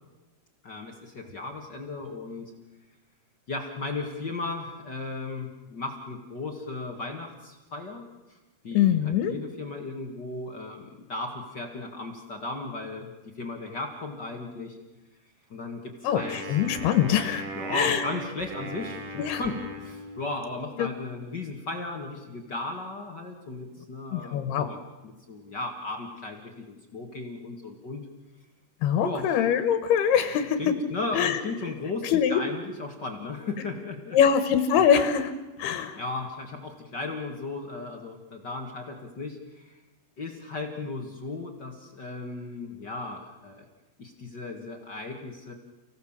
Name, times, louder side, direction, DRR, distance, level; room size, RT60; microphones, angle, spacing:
voice 1, 0.6-2.5 3.5-8.0 8.3-8.4 8.6-13.1 13.4-14.8 15.5-16.9 17.5-28.0 29.0-29.4 30.6-34.2 35.9-39.8 40.2-43.6 44.0-45.5, left 3 dB, 40° left, 2 dB, 1.6 m, -36 dB
voice 2, 8.7-9.3 16.0-17.4 17.7-18.1 19.2-19.4 20.8-20.9 24.1-24.7 28.8-30.7 31.1-31.4 32.0-32.4 34.1-35.3 35.6-36.0, left 8 dB, 85° left, 9 dB, 3.2 m, -23 dB
Wind instrument woodwind instrument, 16.2-20.6, right 1 dB, 75° right, 4.6 m, -38 dB
29.5 x 17.5 x 7.4 m, 1.1 s
omnidirectional pair, 4.5 m